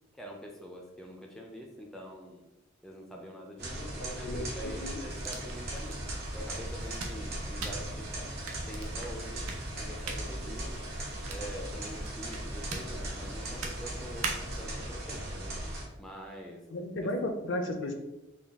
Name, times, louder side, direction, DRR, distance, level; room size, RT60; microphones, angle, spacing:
voice 1, 0.1-2.5 2.8-6.0 6.3-8.3 8.6-9.4 9.8-10.8 11.3-15.6 16.0-16.6 17.0-17.1, equal, ahead, 0 dB, 0.4 m, -45 dB
sound 1, 3.6-15.8, right 1 dB, 45° right, 0.9 m, -38 dB
voice 2, 4.0-5.0 16.7-17.9, left 1 dB, 60° left, 5 dB, 0.5 m, -34 dB
sound 2, 5.1-14.7, right 4 dB, 90° right, 0.6 m, -43 dB
4.0 x 2.3 x 3.4 m, 0.95 s
head